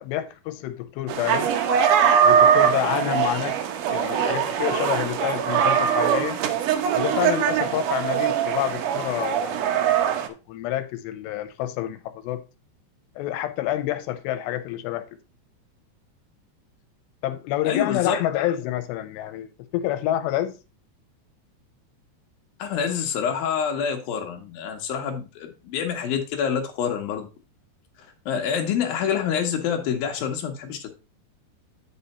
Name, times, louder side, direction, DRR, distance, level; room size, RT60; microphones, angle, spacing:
voice 1, 0.0-1.5 2.2-3.6 3.9-6.4 6.9-10.0 10.5-12.4 13.2-15.1 17.2-20.5, left 13 dB, 90° left, 2.8 m, -28 dB
sound 1, 1.1-10.3, right 8 dB, 90° right, 1.8 m, -22 dB
voice 2, 17.6-18.2 22.6-27.3 28.0-30.9, left 7 dB, 70° left, 2.6 m, -27 dB
9.0 x 5.5 x 4.1 m
omnidirectional pair, 5.0 m